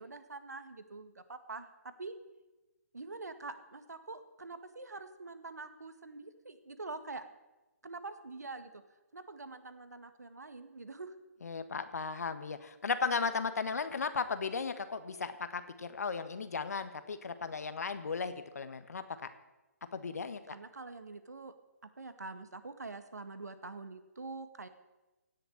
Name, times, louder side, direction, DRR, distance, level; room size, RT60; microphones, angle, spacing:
voice 1, 0.0-1.7 2.0-2.1 2.9-7.2 7.8-8.8 9.1-11.1 20.5-21.5 21.8-24.7, right 3 dB, 85° right, 10 dB, 1.8 m, -45 dB
voice 2, 11.4-19.0 19.9-20.5, left 5 dB, 70° left, 11 dB, 1.5 m, -36 dB
17.0 x 6.9 x 9.7 m, 1.1 s
figure-of-eight pair, 140°, 9 cm